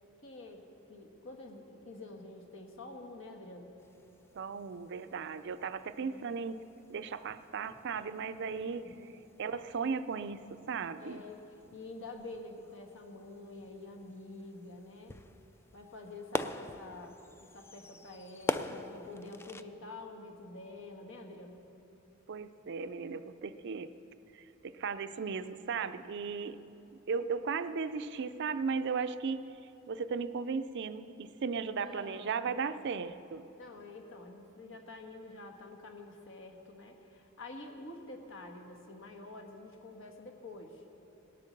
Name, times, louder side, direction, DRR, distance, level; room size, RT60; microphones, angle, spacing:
voice 1, 0.2-0.6 0.9-3.8 6.0-6.3 8.8-9.3 11.0-15.2 15.7-21.6 31.8-32.6 33.6-40.8, left 2 dB, 65° left, 3 dB, 1.5 m, -48 dB
sound 1, 3.8-19.6, left 2 dB, 10° left, 0.3 m, -44 dB
voice 2, 4.4-6.6 6.9-8.8 9.4-11.2 22.3-23.9 24.3-26.6 27.1-29.4 29.9-33.5, right 5 dB, 55° right, 12 dB, 0.5 m, -36 dB
18.5 x 8.3 x 6.6 m, 2.9 s
head